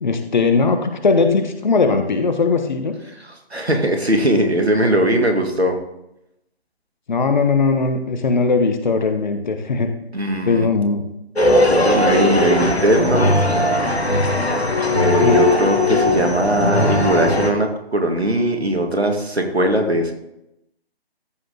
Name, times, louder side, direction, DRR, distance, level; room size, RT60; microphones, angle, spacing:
voice 1, 0.0-3.0 7.1-9.9 10.4-11.0 15.2-15.4, left 4 dB, 45° left, 7 dB, 1.2 m, -19 dB
voice 2, 3.2-5.8 10.1-10.7 11.6-13.3 14.9-20.1, right 1 dB, 85° right, 4 dB, 2.0 m, -20 dB
sound 1, 11.4-17.5, left 2 dB, 80° left, 1.7 m, -18 dB
14.0 x 5.2 x 3.9 m, 0.84 s
figure-of-eight pair, 145°, 31 cm